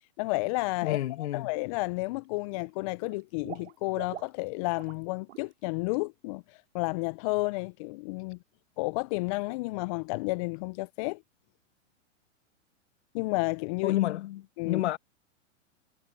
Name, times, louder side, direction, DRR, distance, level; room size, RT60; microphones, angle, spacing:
voice 1, 0.2-6.4 6.7-8.4 8.8-11.2 13.1-14.0 14.6-14.8, left 25 dB, 30° left, 0.4 m, -31 dB
voice 2, 0.8-1.5 13.8-15.0, left 14 dB, 60° left, 1.9 m, -30 dB
Water / Liquid, 1.0-1.2 1.5-2.2 2.5-5.0 5.3-5.5 5.9-6.0, right 12 dB, 65° right, 2.7 m, -46 dB
hypercardioid pair, 120°, 38 cm